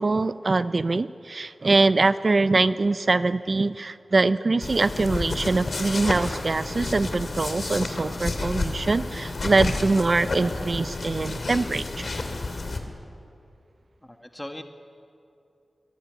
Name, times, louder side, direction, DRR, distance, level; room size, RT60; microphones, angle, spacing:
voice 1, 0.0-12.1, right 3 dB, 45° right, 13 dB, 0.5 m, -23 dB
sound 1, 4.6-12.8, left 2 dB, 55° left, 2.5 m, -30 dB
voice 2, 14.0-14.6, left 1 dB, 10° left, 5 dB, 1.6 m, -38 dB
23.5 x 18.5 x 9.4 m, 2.6 s
wide cardioid pair, 100°, 0 cm